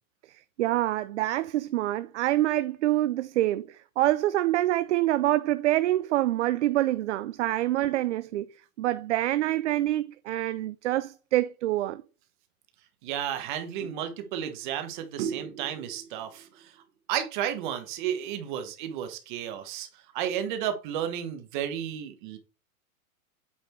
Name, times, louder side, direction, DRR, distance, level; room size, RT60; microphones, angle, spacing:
voice 1, 0.6-8.5 8.8-12.0, right 15 dB, 55° right, 0.5 m, -26 dB
voice 2, 13.0-16.8 17.1-22.4, right 10 dB, 35° right, 1.3 m, -32 dB
8.6 x 4.2 x 4.4 m
supercardioid pair, 175°, 44 cm